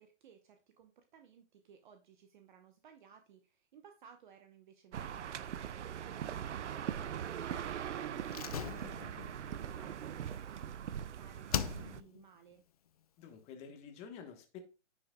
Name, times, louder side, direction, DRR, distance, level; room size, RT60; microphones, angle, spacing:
voice 1, 0.0-12.6, right 7 dB, 45° right, 7 dB, 0.9 m, -59 dB
sound 1, 4.9-12.0, right 9 dB, 85° right, 0.7 m, -41 dB
Slam, 8.3-11.0 11.5-12.3 12.5-12.6, left 9 dB, 35° left, 0.4 m, -40 dB
voice 2, 13.2-14.6, left 7 dB, 20° left, 7 dB, 1.2 m, -49 dB
10.0 x 6.0 x 2.2 m, 0.34 s
hypercardioid pair, 155°, 35 cm